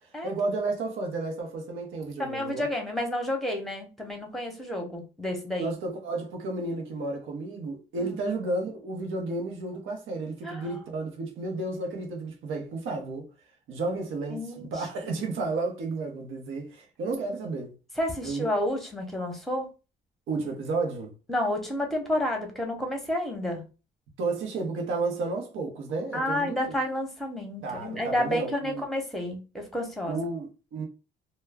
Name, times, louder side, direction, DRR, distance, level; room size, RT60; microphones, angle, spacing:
voice 1, 0.2-2.7 5.6-13.3 13.7-17.8 18.2-18.5 20.3-21.2 24.2-26.8 27.6-28.8 30.1-30.9, right 3 dB, 80° right, 0.8 m, -32 dB
voice 2, 2.2-5.7 8.0-8.3 10.4-10.6 14.3-14.7 15.0-15.2 18.0-19.7 21.3-23.6 26.1-30.2, left 1 dB, ahead, 0.9 m, -30 dB
2.2 x 2.1 x 3.4 m
cardioid pair, 90°, 20 cm